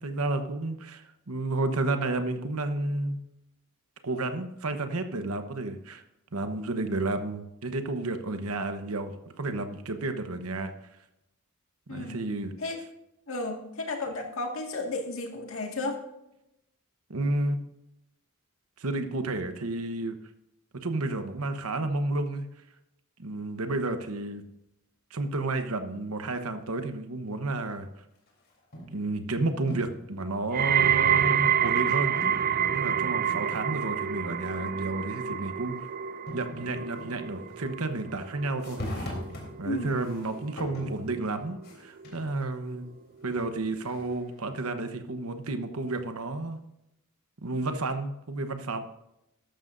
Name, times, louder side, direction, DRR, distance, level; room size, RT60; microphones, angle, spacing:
voice 1, 0.0-3.2 4.0-6.0 6.3-10.7 11.9-12.5 17.1-17.6 18.8-20.2 20.8-22.5 23.2-24.4 25.1-27.9 28.9-32.5 32.7-35.8 36.3-39.1 39.6-42.8 43.2-46.6 47.4-48.9, right 2 dB, 80° right, 8 dB, 1.1 m, -31 dB
voice 2, 11.9-12.2 12.6-12.8 13.3-16.0 39.6-40.0, left 2 dB, 65° left, 2 dB, 2.0 m, -33 dB
sound 1, 28.3-29.1 29.5-30.1 30.8-30.9 32.2-34.1 34.4-34.5 35.7-35.8 36.3-38.1 38.5-42.3 42.8-44.4, left 1 dB, 45° left, 3.6 m, -42 dB
sound 2, 30.5-41.7 42.0-42.5 43.2-43.3, right 9 dB, 40° right, 0.4 m, -28 dB
13.5 x 12.0 x 2.6 m, 0.86 s
head